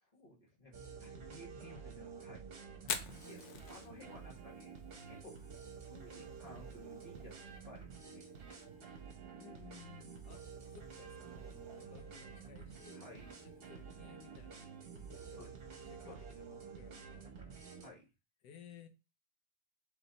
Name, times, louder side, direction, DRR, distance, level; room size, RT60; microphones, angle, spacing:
voice 1, 0.0-2.4 3.2-4.7 5.1-5.4 5.9-8.3 12.9-13.3 15.3-15.6 16.0-16.2 17.8-18.1, left 1 dB, 25° left, 1.3 m, -55 dB
sound 1, 0.7-17.9, right 6 dB, 45° right, 0.8 m, -50 dB
Fire, 2.8-16.6, left 7 dB, 65° left, 0.7 m, -51 dB
voice 2, 9.3-13.1 13.4-15.5 15.8-17.9 18.4-18.9, left 8 dB, 80° left, 1.3 m, -59 dB
3.4 x 3.4 x 3.9 m
omnidirectional pair, 1.8 m